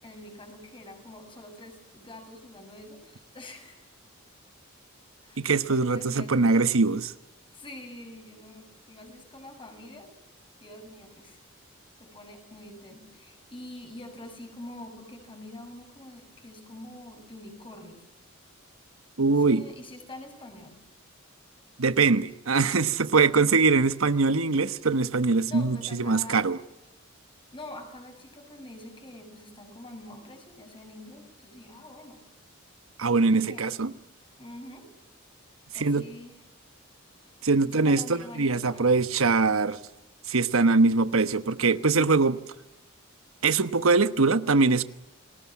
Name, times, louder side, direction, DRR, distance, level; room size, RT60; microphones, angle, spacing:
voice 1, 0.0-3.8 5.2-6.5 7.5-10.1 10.6-11.4 12.0-18.1 19.3-20.8 25.5-26.5 27.5-32.2 33.2-33.7 34.4-34.9 35.7-36.4 37.6-39.0, left 1 dB, 25° left, 6.8 m, -45 dB
voice 2, 5.4-7.1 19.2-19.6 21.8-26.6 33.0-33.9 35.7-36.0 37.4-39.8 40.3-42.4 43.4-44.8, right 4 dB, 80° right, 1.1 m, -22 dB
29.5 x 21.0 x 7.4 m
head